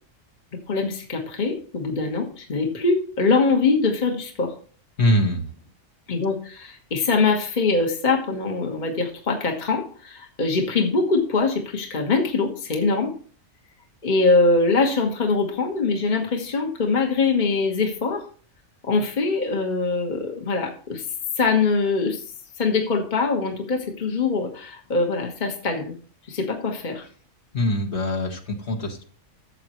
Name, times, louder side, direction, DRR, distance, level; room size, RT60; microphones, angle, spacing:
voice 1, 0.7-4.5 6.1-13.1 14.0-18.3 18.8-21.0 21.4-22.2 22.6-25.9 26.3-27.0, left 3 dB, 35° left, 3 dB, 1.4 m, -23 dB
voice 2, 5.0-5.5 27.5-29.0, left 1 dB, 55° left, 2 dB, 1.8 m, -23 dB
12.5 x 7.7 x 3.1 m, 0.42 s
omnidirectional pair, 1.4 m